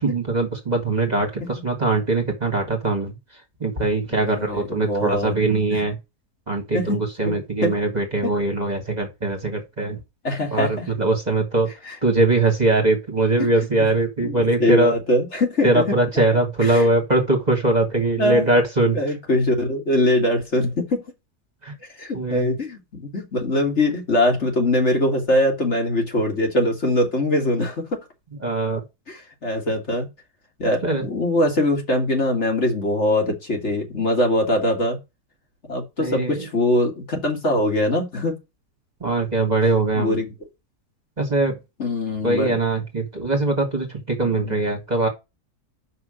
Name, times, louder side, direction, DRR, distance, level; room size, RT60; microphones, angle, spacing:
voice 1, 0.0-3.1 3.6-5.9 6.5-10.0 10.5-11.7 12.0-14.9 15.6-19.0 21.6-21.7 22.1-22.5 28.4-28.8 30.8-31.0 36.0-36.4 39.0-40.2 41.2-41.6 42.2-45.1, right 2 dB, 25° right, 2.0 m, -21 dB
voice 2, 4.1-5.3 5.7-5.9 6.7-7.0 7.2-7.3 7.6-7.7 8.2-8.3 10.2-10.9 11.8-12.0 13.4-13.5 14.2-15.8 16.6-16.9 18.2-18.5 18.9-21.0 22.0-27.8 29.1-30.1 30.6-35.0 35.7-38.3 39.9-40.3 41.8-42.6 44.2-44.6, left 1 dB, 45° left, 2.4 m, -22 dB
6.1 x 5.8 x 6.3 m
omnidirectional pair, 1.7 m